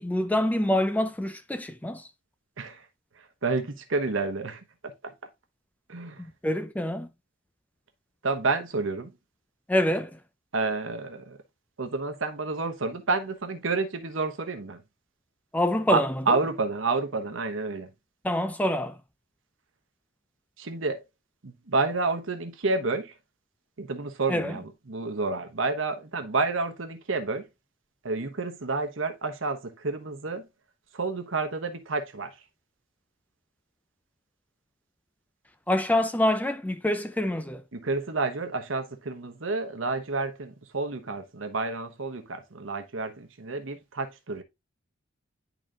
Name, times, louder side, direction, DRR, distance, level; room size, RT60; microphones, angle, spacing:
voice 1, 0.0-2.1 6.2-7.1 9.7-10.1 15.5-16.1 18.2-19.0 24.3-24.5 35.7-37.6, left 1 dB, 10° left, 0.4 m, -26 dB
voice 2, 3.2-4.9 5.9-6.3 8.2-9.1 10.5-11.4 11.8-14.8 15.9-17.9 20.6-21.0 21.4-23.1 23.8-27.5 28.0-30.5 30.9-32.4 37.7-44.4, right 3 dB, 70° right, 1.1 m, -30 dB
10.5 x 4.0 x 2.4 m
head